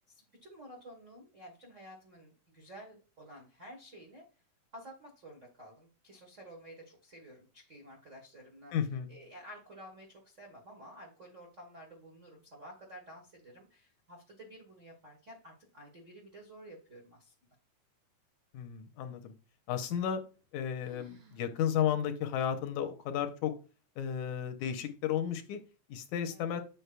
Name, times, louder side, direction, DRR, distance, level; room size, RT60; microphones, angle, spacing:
voice 1, 0.0-4.2 4.7-8.7 9.1-17.3 26.3-26.5, equal, 75° right, -1 dB, 0.7 m, -52 dB
voice 2, 8.7-9.1 18.5-19.3 19.7-20.2 20.5-23.5 24.0-25.6 25.9-26.6, left 9 dB, 80° left, 7 dB, 1.9 m, -33 dB
sound 1, 20.3-20.5 20.8-21.5 21.8-21.9 22.6-22.7 23.4-23.8, equal, 55° right, 1.6 m, -57 dB
8.0 x 5.9 x 2.2 m, 0.35 s
omnidirectional pair, 3.6 m